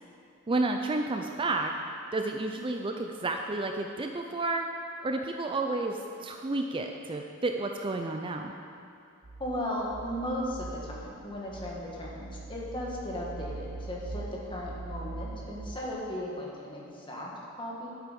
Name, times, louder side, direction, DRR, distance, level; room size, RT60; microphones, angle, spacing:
voice 1, 0.5-1.7 2.1-4.7 5.0-8.5, right 2 dB, 25° right, 3 dB, 0.5 m, -31 dB
sound 1, 9.2-15.9, right 3 dB, 55° right, 0.9 m, -42 dB
voice 2, 9.4-17.9, left 1 dB, 25° left, -4 dB, 2.0 m, -36 dB
11.5 x 8.3 x 5.3 m, 2.5 s
head